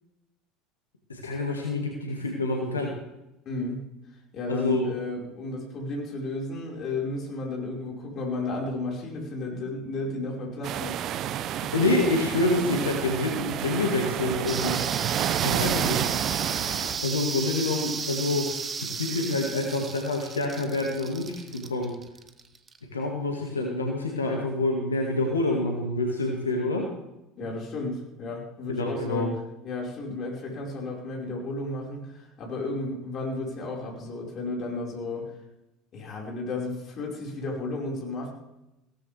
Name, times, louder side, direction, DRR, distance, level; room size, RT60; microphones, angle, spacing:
voice 1, 1.1-2.9 4.5-4.9 11.7-14.8 15.4-16.0 17.0-18.6 18.8-21.9 22.9-26.8 28.7-29.3, left 2 dB, 90° left, 0 dB, 2.0 m, -27 dB
voice 2, 3.5-3.9 4.3-11.1 27.4-29.4 29.6-35.3 35.9-38.3, left 2 dB, 45° left, -1 dB, 5.1 m, -33 dB
sound 1, 10.6-17.1, right 11 dB, 50° right, 0.7 m, -29 dB
sound 2, 14.5-22.8, right 5 dB, 30° right, 1.3 m, -34 dB
17.0 x 14.0 x 3.5 m, 0.91 s
hypercardioid pair, 70°, 0 cm